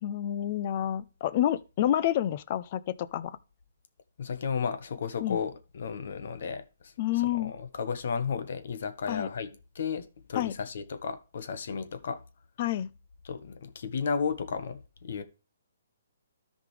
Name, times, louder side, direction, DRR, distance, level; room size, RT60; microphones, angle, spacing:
voice 1, 0.0-3.4 5.2-5.4 7.0-7.5 9.1-9.3 10.3-10.5 12.6-12.9, left 12 dB, 35° left, 0.5 m, -29 dB
voice 2, 4.2-6.9 7.3-12.2 13.2-15.2, left 6 dB, 60° left, 1.4 m, -33 dB
13.5 x 5.1 x 3.3 m
hypercardioid pair, 160°, 0 cm